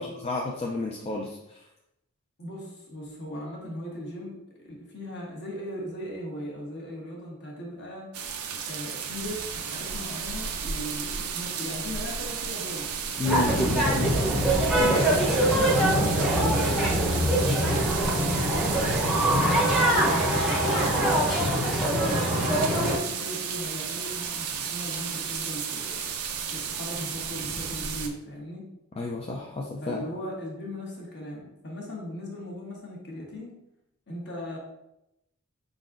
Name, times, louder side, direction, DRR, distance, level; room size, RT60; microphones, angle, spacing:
voice 1, 0.0-1.6 13.2-14.2 14.8-15.0 29.0-30.0, left 2 dB, 30° left, -1 dB, 0.4 m, -31 dB
voice 2, 2.4-8.1 8.6-12.9 14.0-14.4 14.9-21.4 21.9-26.1 26.5-28.7 29.8-33.5 34.1-34.6, equal, 50° left, -2 dB, 1.1 m, -38 dB
sound 1, 8.1-28.1, right 6 dB, 85° right, 0.5 m, -33 dB
sound 2, 13.2-23.0, right 1 dB, ahead, 0.7 m, -23 dB
4.7 x 3.9 x 2.5 m, 0.85 s
head